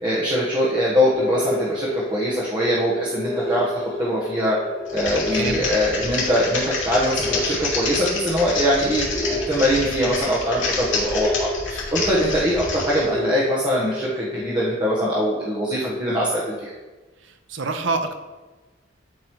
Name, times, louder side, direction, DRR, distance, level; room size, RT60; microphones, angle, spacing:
voice 1, 0.0-4.6 4.9-16.7, equal, 25° right, -7 dB, 1.2 m, -22 dB
sound 1, 1.1-14.7, left 1 dB, 15° left, 1.2 m, -31 dB
Typing, 4.9-13.0, left 3 dB, 65° left, 2.7 m, -28 dB
voice 2, 5.2-5.6 17.2-18.2, right 3 dB, 70° right, 8 dB, 0.7 m, -27 dB
12.0 x 5.2 x 3.1 m, 1.3 s
head